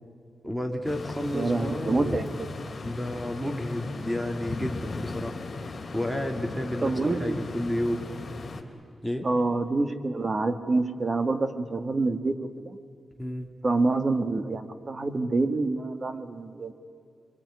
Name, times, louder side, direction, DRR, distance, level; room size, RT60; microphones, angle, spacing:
voice 1, 0.4-2.2 2.8-5.4 5.9-8.1 9.0-9.3 13.2-13.5, left 1 dB, 5° right, 4 dB, 3.2 m, -31 dB
sound 1, 0.8-8.6, left 3 dB, 45° left, 3.0 m, -37 dB
voice 2, 1.3-2.5 6.8-7.4 9.2-12.8 13.6-16.7, right 3 dB, 35° right, 9 dB, 1.8 m, -27 dB
26.5 x 23.5 x 9.7 m, 2.2 s
cardioid pair, 85°, 0 cm